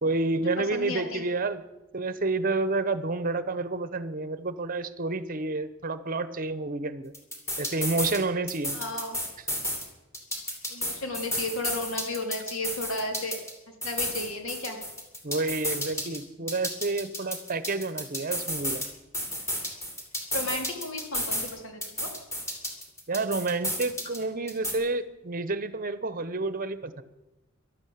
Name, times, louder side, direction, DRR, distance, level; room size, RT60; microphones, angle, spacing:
voice 1, 0.0-1.6 1.9-7.1 7.6-8.8 15.2-18.8 23.1-27.0, right 3 dB, 40° right, 14 dB, 0.9 m, -29 dB
voice 2, 0.7-1.2 8.7-9.2 10.7-13.4 13.8-14.8 20.3-22.1, left 2 dB, 70° left, 4 dB, 2.9 m, -33 dB
sound 1, 7.1-8.2 8.5-9.8 10.1-13.5 13.8-16.2 16.5-18.9 19.1-21.5 21.8-24.2 24.5-24.7, equal, 15° left, 2.7 m, -32 dB
12.5 x 12.0 x 8.6 m, 1.0 s
head